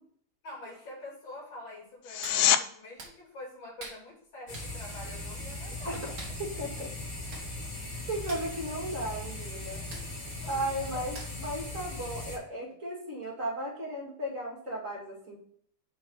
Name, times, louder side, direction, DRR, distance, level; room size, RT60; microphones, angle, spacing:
voice 1, 0.4-6.4 9.9-10.1 10.4-11.1, left 2 dB, 60° left, -4 dB, 3.3 m, -46 dB
sound 1, 2.0-2.6 14.0-14.1, left 12 dB, 90° left, 1.5 m, -24 dB
Hands, 2.2-2.4 3.0-3.1 3.8-4.0 4.5-4.7 6.2-6.4 7.0-7.1 7.3-7.5 7.7-7.9 8.2-8.5 9.9-10.1 11.1-11.5 11.9-12.0, right 3 dB, 50° right, 2.1 m, -44 dB
sound 2, 4.5-12.4, left 2 dB, 40° left, 2.8 m, -39 dB
voice 2, 6.4-6.9 8.1-9.8 10.5-15.4, right 1 dB, 35° right, -3 dB, 2.5 m, -35 dB
5.7 x 4.7 x 5.4 m, 0.63 s
omnidirectional pair, 2.4 m